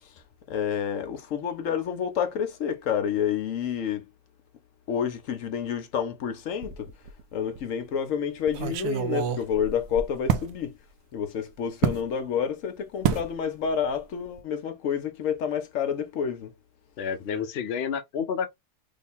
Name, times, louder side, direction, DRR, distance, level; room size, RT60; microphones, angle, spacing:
voice 1, 0.5-4.1 4.9-6.9 7.3-10.8 11.1-16.5, left 8 dB, 60° left, 0.9 m, -29 dB
sound 1, 6.6-7.2 7.6-7.7 8.5-10.5 11.8-12.1 13.0-13.3 13.6-14.0 14.2-14.4, right 9 dB, 80° right, 1.1 m, -28 dB
voice 2, 17.0-18.5, left 7 dB, 80° left, 0.5 m, -30 dB
3.1 x 2.2 x 4.2 m
omnidirectional pair, 1.7 m